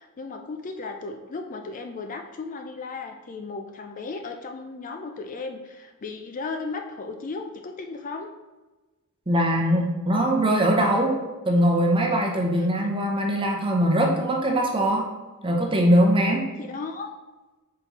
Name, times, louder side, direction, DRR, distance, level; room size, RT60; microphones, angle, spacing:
voice 1, 0.0-8.3 12.6-12.7 16.6-17.1, left 3 dB, 35° left, 5 dB, 0.4 m, -35 dB
voice 2, 9.3-11.2 11.5-15.1 15.4-16.5, equal, 25° right, 0 dB, 0.8 m, -21 dB
5.3 x 4.5 x 4.1 m, 1.2 s
head